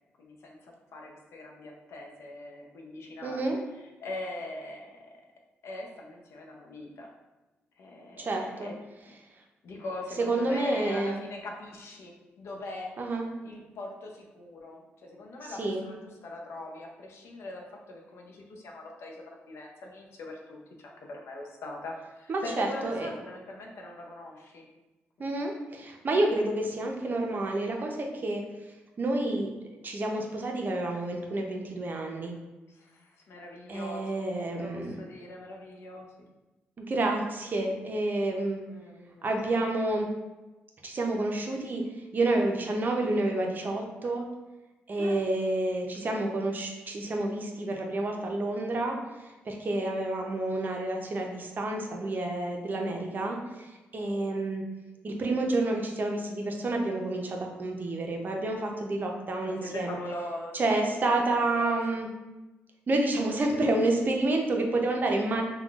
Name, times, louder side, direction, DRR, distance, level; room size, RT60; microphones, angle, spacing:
voice 1, 0.2-5.0 5.6-7.1 7.8-8.7 9.6-12.9 13.4-24.6 25.2-25.4 32.7-34.3 34.5-36.3 38.7-39.3 44.9-45.2 59.4-60.9 61.3-61.8, left 2 dB, 70° left, 0 dB, 0.5 m, -42 dB
voice 2, 3.2-3.6 8.2-8.7 10.2-11.2 13.0-13.2 15.6-15.8 22.3-23.1 25.2-28.4 29.0-29.5 29.8-32.3 33.7-35.0 36.8-38.6 39.2-40.1 40.8-44.3 44.9-49.0 49.4-54.6 55.0-60.0 60.5-62.1 62.9-65.4, right 2 dB, 45° right, 2 dB, 0.5 m, -29 dB
3.6 x 2.2 x 2.3 m, 1.1 s
cardioid pair, 70°, 5 cm